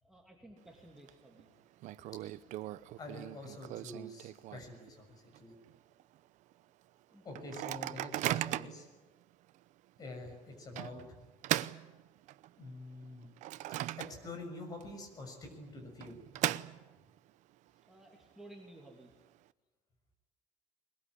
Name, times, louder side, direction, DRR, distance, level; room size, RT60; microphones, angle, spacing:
voice 1, 0.0-1.5 7.1-7.3 17.8-19.1, right 1 dB, 5° right, -1 dB, 2.7 m, -55 dB
Microwave oven, 0.6-1.1 1.4-1.5 1.8-4.9 5.3-5.4 5.7-6.0 6.5-6.6 7.3-8.9 9.5-9.6 10.8-12.6 13.0-14.5 14.8-14.9 15.8-17.2, right 14 dB, 65° right, 0.8 m, -38 dB
voice 2, 3.0-5.5 7.2-8.9 10.0-11.1 12.6-13.3 14.0-16.1, left 2 dB, 30° left, 4 dB, 6.6 m, -46 dB
22.0 x 21.5 x 9.9 m, 1.2 s
cardioid pair, 175°, 13 cm